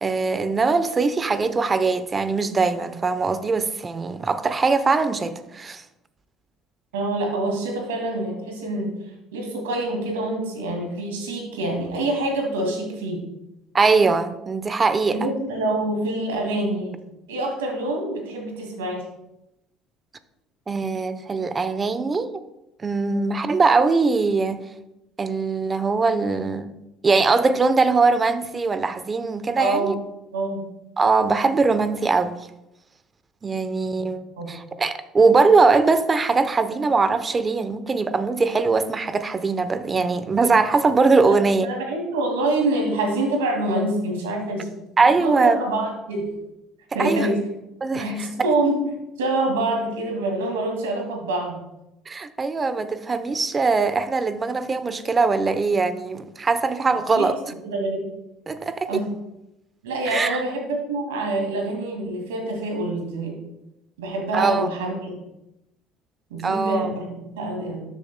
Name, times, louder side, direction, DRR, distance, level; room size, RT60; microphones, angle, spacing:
voice 1, 0.0-5.8 13.7-15.2 20.7-22.4 22.8-24.6 25.2-26.7 27.0-29.9 31.0-32.5 33.4-41.7 45.0-45.6 47.0-47.3 47.8-48.5 52.1-57.4 58.5-59.0 60.1-60.4 64.3-64.7 66.4-66.9, right 4 dB, 30° right, 12 dB, 0.8 m, -21 dB
voice 2, 6.9-8.9 9.3-13.2 15.1-17.0 17.3-19.0 23.1-23.4 29.6-29.9 30.3-30.7 34.4-34.6 41.3-44.7 45.2-46.2 46.9-47.4 47.9-51.6 56.9-57.3 57.6-58.1 58.9-59.1 59.8-63.4 64.0-65.2 66.3-67.8, right 2 dB, 90° right, 1 dB, 2.2 m, -26 dB
13.0 x 7.2 x 2.2 m, 0.89 s
hypercardioid pair, 70°, 0 cm